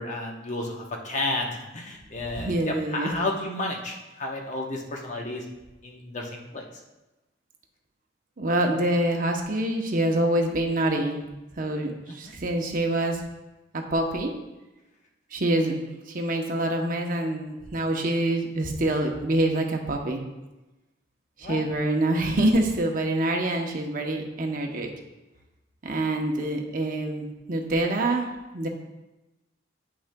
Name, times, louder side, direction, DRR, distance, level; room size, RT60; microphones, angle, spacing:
voice 1, 0.0-1.5 1.7-5.4 5.8-6.6 12.2-12.3 21.4-21.6, left 2 dB, 40° left, 0 dB, 0.9 m, -32 dB
voice 2, 2.3-3.1 8.4-11.2 11.6-13.3 13.7-14.3 15.3-20.2 21.4-24.9 25.8-28.3 28.5-28.7, right 1 dB, 45° right, 2 dB, 0.8 m, -26 dB
8.6 x 6.1 x 2.2 m, 1.0 s
head